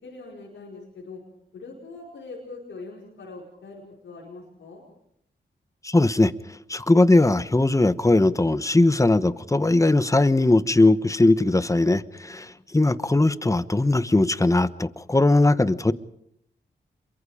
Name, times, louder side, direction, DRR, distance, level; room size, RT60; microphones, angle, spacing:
voice 1, 0.0-1.2 1.5-4.8 12.3-12.5, left 3 dB, 90° left, -4 dB, 5.1 m, -42 dB
voice 2, 5.8-6.3 6.7-15.9, left 2 dB, 15° left, 14 dB, 1.1 m, -19 dB
27.5 x 23.5 x 5.0 m, 0.75 s
cardioid pair, 60°, 19 cm